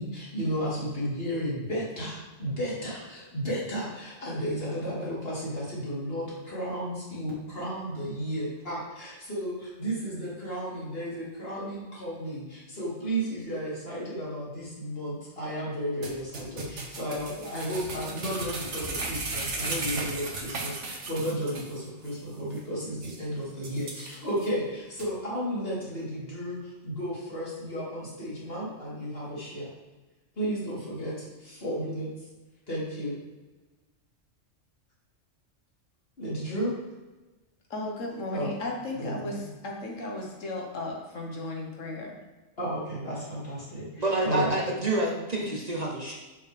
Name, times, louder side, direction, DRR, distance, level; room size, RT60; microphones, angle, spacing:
voice 1, 0.0-29.7 30.4-32.1 32.7-33.1 36.2-36.7 38.3-38.5 39.0-39.4 42.6-44.6, equal, 50° left, -7 dB, 2.8 m, -33 dB
sound 1, 16.0-21.8 22.0-22.1 22.6-22.7 23.0-23.2 23.6-24.5 25.0-25.1, right 3 dB, 70° right, 1.4 m, -35 dB
voice 2, 37.7-42.2, left 2 dB, 80° left, -1 dB, 1.7 m, -35 dB
voice 3, 44.0-46.2, right 2 dB, 35° right, -2 dB, 1.0 m, -28 dB
6.8 x 6.3 x 3.5 m, 1.2 s
omnidirectional pair, 1.3 m